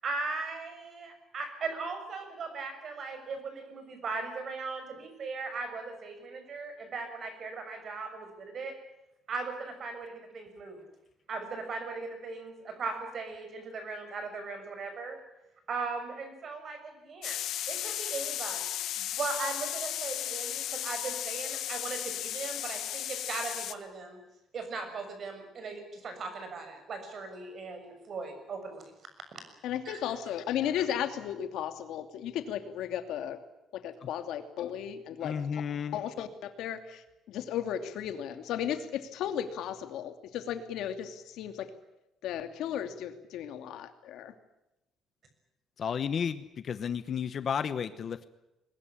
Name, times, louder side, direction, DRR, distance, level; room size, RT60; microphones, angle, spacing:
voice 1, 0.0-8.7 9.3-10.8 11.3-15.2 15.7-18.8 19.1-24.2 24.5-28.8 29.8-30.0, right 4 dB, 40° right, 7 dB, 6.6 m, -38 dB
sound 1, 17.2-23.7, left 12 dB, 65° left, 1.4 m, -35 dB
voice 2, 29.6-33.4 33.7-35.6 35.9-41.7 42.2-44.3, left 10 dB, 80° left, 8 dB, 2.7 m, -35 dB
voice 3, 35.2-36.0 45.8-48.3, left 7 dB, 40° left, 13 dB, 1.0 m, -32 dB
22.0 x 20.5 x 9.9 m, 0.94 s
cardioid pair, 170°, 0 cm